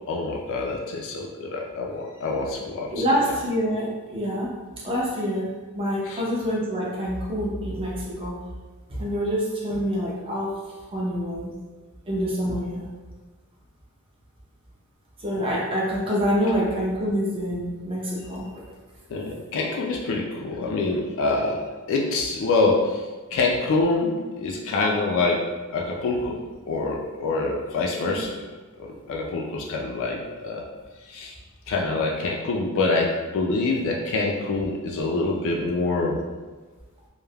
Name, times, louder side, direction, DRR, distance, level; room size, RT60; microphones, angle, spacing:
voice 1, 0.1-3.0 6.1-6.2 19.1-21.6 21.9-23.1 23.3-26.4 26.6-28.4 28.8-30.6 31.0-31.3 31.7-36.2, left 3 dB, 60° left, -1 dB, 0.3 m, -25 dB
voice 2, 2.9-4.5 4.8-8.4 8.9-10.5 10.9-11.5 12.1-12.8 15.2-18.5 28.0-28.2, equal, 25° right, -4 dB, 0.5 m, -26 dB
3.2 x 2.0 x 2.2 m, 1.3 s
head